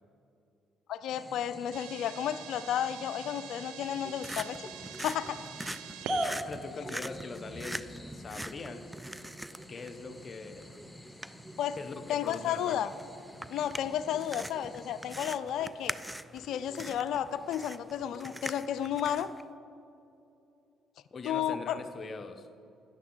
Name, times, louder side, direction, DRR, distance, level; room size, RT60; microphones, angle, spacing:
voice 1, 0.9-4.7 5.0-5.4 11.6-11.8 12.1-12.9 13.5-16.0 16.3-19.3 21.2-21.8, left 10 dB, 70° left, 14 dB, 0.4 m, -32 dB
sound 1, 1.1-15.1, equal, 10° left, 1.0 m, -44 dB
sound 2, 1.7-10.0, right 9 dB, 80° right, 0.6 m, -47 dB
sound 3, 3.8-19.4, right 1 dB, 5° right, 0.4 m, -44 dB
voice 2, 6.4-8.9 9.7-11.0 11.8-12.9 21.1-22.5, left 4 dB, 40° left, 8 dB, 0.9 m, -42 dB
13.0 x 9.4 x 3.9 m, 2.7 s
supercardioid pair, 60°, 0 cm